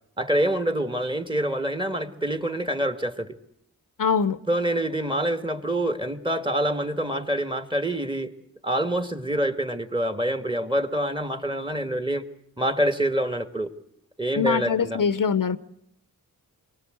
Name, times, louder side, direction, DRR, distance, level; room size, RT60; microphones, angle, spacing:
voice 1, 0.2-3.4 4.5-8.3 8.6-12.2 12.6-13.7 14.2-15.0, right 1 dB, 15° right, 1.8 m, -26 dB
voice 2, 4.0-4.4 14.4-15.6, left 6 dB, 60° left, 0.9 m, -23 dB
23.5 x 18.5 x 7.9 m
cardioid pair, 45°, 37 cm